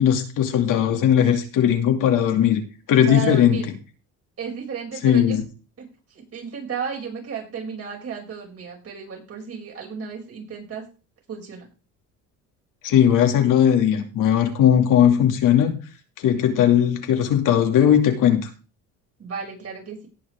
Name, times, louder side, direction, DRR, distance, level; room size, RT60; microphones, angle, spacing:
voice 1, 0.0-2.6 2.9-3.6 5.0-5.4 12.8-15.7 16.2-18.5, left 9 dB, 70° left, 4 dB, 2.5 m, -18 dB
voice 2, 3.1-3.7 4.4-5.4 5.8-10.8 11.3-11.7 19.2-20.1, right 6 dB, 45° right, -1 dB, 6.4 m, -33 dB
18.0 x 6.4 x 3.6 m, 0.34 s
cardioid pair, 100°, 32 cm